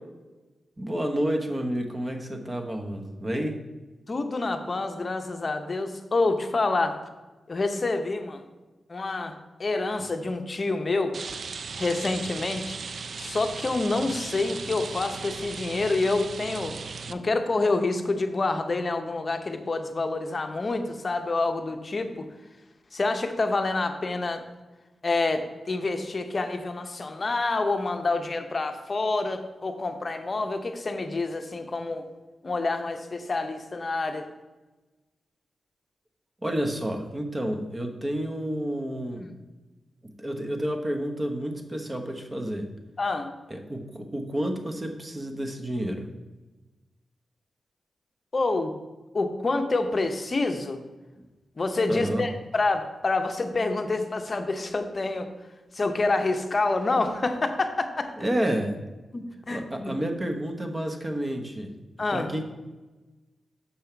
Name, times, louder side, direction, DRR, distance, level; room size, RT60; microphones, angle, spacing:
voice 1, 0.8-3.6 36.4-39.2 40.2-42.7 43.5-46.1 51.9-52.2 58.2-58.7 59.5-61.7 62.1-62.4, right 1 dB, 20° right, 4 dB, 1.0 m, -30 dB
voice 2, 4.1-7.0 7.5-8.5 8.9-11.1 11.8-12.8 13.2-16.8 17.1-22.2 22.9-24.4 25.0-32.1 32.4-34.3 39.1-39.3 43.0-43.3 48.3-48.7 49.1-50.8 51.6-55.3 55.7-58.1 59.1-59.9 62.0-62.3, left 3 dB, 40° left, 7 dB, 0.7 m, -27 dB
Rain, 11.1-17.1, right 5 dB, 60° right, 0.4 m, -37 dB
7.0 x 5.5 x 4.5 m, 1.2 s
wide cardioid pair, 100°, 0 cm